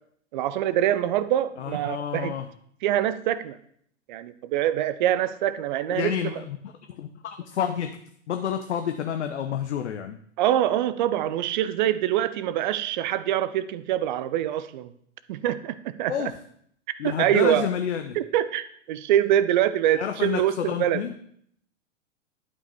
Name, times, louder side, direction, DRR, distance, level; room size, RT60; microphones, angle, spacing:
voice 1, 0.3-2.3 2.8-3.6 4.1-6.4 10.4-14.9 15.3-16.3 17.0-17.7 18.1-21.0, right 12 dB, 40° right, 14 dB, 0.5 m, -24 dB
voice 2, 1.6-2.5 5.9-6.6 6.9-8.0 8.3-10.2 16.1-16.3 17.0-18.2 19.9-21.1, left 8 dB, 60° left, 7 dB, 0.7 m, -29 dB
11.0 x 5.3 x 3.4 m, 0.66 s
figure-of-eight pair, 100°, 38 cm